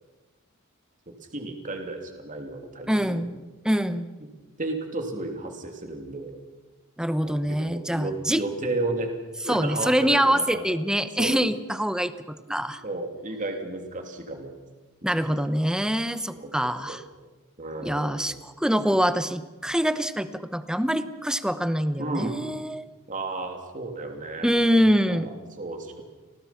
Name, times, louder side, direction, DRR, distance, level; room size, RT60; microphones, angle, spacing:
voice 1, 1.1-3.2 4.6-6.4 7.2-7.4 7.6-10.6 11.2-11.4 12.8-14.5 15.3-15.5 16.3-17.0 17.6-18.4 22.0-22.4 23.1-24.5 25.1-26.0, right 2 dB, 35° right, 4 dB, 3.0 m, -33 dB
voice 2, 2.9-3.4 3.6-4.1 7.0-8.4 9.5-12.8 15.0-17.0 17.8-22.8 24.4-25.3, equal, 5° right, 12 dB, 0.9 m, -25 dB
29.5 x 20.0 x 5.9 m, 1.2 s
head